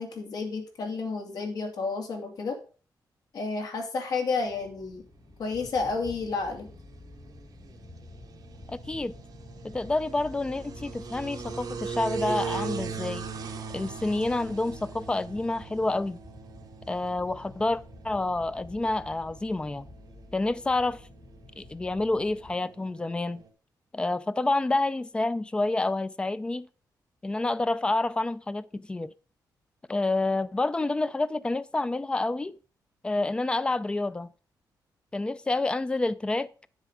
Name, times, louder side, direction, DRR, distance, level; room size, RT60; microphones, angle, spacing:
voice 1, 0.0-2.6 3.3-5.0 5.4-6.7, left 4 dB, 60° left, 2.7 m, -31 dB
sound 1, 4.4-22.6, left 2 dB, 40° left, 2.5 m, -49 dB
sound 2, 5.4-23.5, right 5 dB, 60° right, 1.6 m, -41 dB
voice 2, 8.7-9.1 9.6-13.3 13.7-16.2 16.9-19.9 20.3-21.0 21.6-23.4 23.9-26.7 27.2-29.1 29.9-32.6 33.0-34.3 35.1-36.5, left 2 dB, 15° left, 0.4 m, -28 dB
9.4 x 7.6 x 5.0 m
wide cardioid pair, 170°, 7 cm